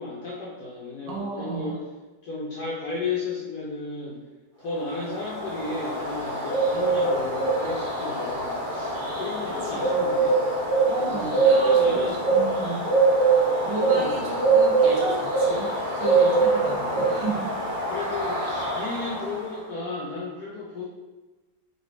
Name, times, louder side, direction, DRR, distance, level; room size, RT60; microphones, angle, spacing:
voice 1, 0.0-1.8 2.2-4.2 4.6-10.4 11.0-12.2 13.8-14.4 16.6-17.2 17.9-20.8, left 3 dB, 70° left, -5 dB, 0.9 m, -34 dB
voice 2, 1.1-1.8 9.5-9.9 10.9-12.9 13.3-15.7 16.0-17.5, right 2 dB, 65° right, -3 dB, 1.4 m, -32 dB
Bird, 4.8-19.5, right 3 dB, 30° right, 1.0 m, -23 dB
3.9 x 2.9 x 3.2 m, 1.2 s
omnidirectional pair, 2.3 m